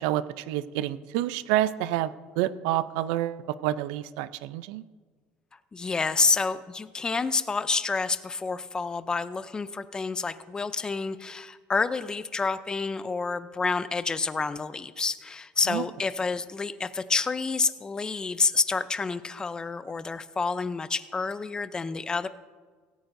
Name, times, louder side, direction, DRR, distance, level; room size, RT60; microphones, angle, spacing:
voice 1, 0.0-2.1 2.4-4.8 15.7-15.8, right 14 dB, 85° right, 16 dB, 0.5 m, -28 dB
voice 2, 5.7-22.3, left 4 dB, 20° left, 13 dB, 0.6 m, -28 dB
17.0 x 15.0 x 2.7 m, 1.5 s
cardioid pair, 120°, 4 cm